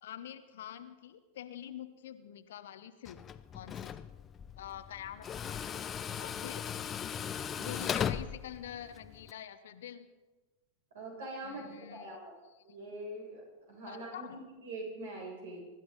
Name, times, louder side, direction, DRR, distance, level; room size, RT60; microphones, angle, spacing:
voice 1, 0.0-3.3 3.5-3.9 4.6-5.9 6.1-6.6 7.6-10.1 11.4-12.2 13.9-14.4, left 10 dB, 60° left, 11 dB, 1.0 m, -46 dB
Tools, 3.0-9.3, left 8 dB, 25° left, 0.6 m, -38 dB
voice 2, 10.9-12.3 12.6-15.6, right 2 dB, 60° right, -1 dB, 7.1 m, -43 dB
24.0 x 12.5 x 4.1 m, 1.2 s
figure-of-eight pair, 90°, 0 cm